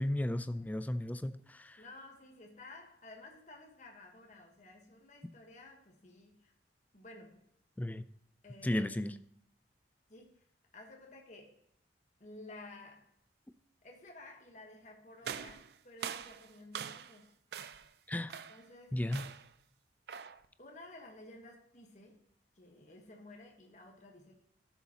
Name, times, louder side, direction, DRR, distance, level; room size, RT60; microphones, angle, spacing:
voice 1, 0.0-1.8 7.8-8.0 8.6-9.1 18.1-18.4 18.9-19.3, left 1 dB, 10° left, 0.4 m, -34 dB
voice 2, 1.8-6.5 6.9-7.5 8.4-9.2 10.1-10.5 10.7-11.6 12.2-13.2 13.8-17.3 18.2-19.0 20.6-22.3 22.5-24.4, left 2 dB, 45° left, 1.3 m, -54 dB
sound 1, 15.2-17.2 17.5-17.9 18.3-18.7 19.1-19.5 20.1-20.5, right 7 dB, 60° right, 0.4 m, -43 dB
12.5 x 7.1 x 2.9 m
head